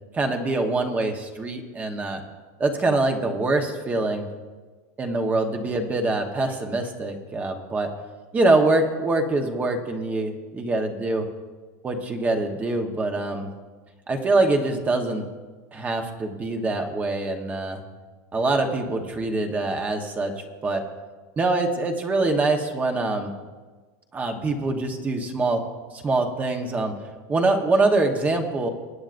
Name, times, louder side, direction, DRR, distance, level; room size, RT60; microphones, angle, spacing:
voice 1, 0.1-2.2 2.6-4.3 5.0-7.9 8.3-11.2 11.8-13.5 14.1-15.2 15.7-17.8 18.3-20.3 20.6-20.8 21.4-23.3 24.1-25.6 25.9-26.9 27.3-28.7, right 2 dB, 20° right, 4 dB, 1.1 m, -24 dB
22.0 x 8.8 x 2.6 m, 1.3 s
supercardioid pair, 135°, 8 cm